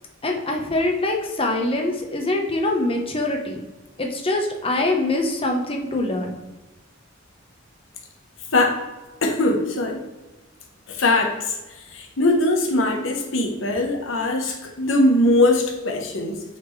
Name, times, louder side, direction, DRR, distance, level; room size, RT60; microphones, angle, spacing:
voice 1, 0.2-3.6 4.0-6.4, left 2 dB, 30° left, 2 dB, 1.0 m, -24 dB
voice 2, 9.2-10.1 10.9-11.5 11.9-16.4, left 2 dB, 85° left, 3 dB, 1.1 m, -21 dB
8.1 x 4.3 x 3.2 m, 1.1 s
head